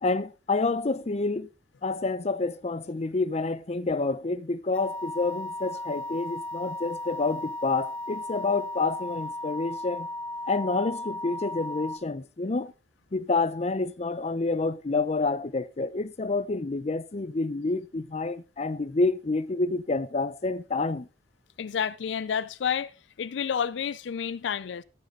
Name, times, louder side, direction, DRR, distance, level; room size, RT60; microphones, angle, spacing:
voice 1, 0.0-1.5 1.8-10.1 10.5-12.7 13.1-21.1, left 3 dB, 35° left, 0.6 m, -28 dB
sound 1, 4.7-12.0, left 1 dB, 5° left, 1.1 m, -36 dB
voice 2, 21.6-22.9 23.2-24.8, left 7 dB, 85° left, 0.4 m, -30 dB
13.5 x 7.5 x 3.8 m
head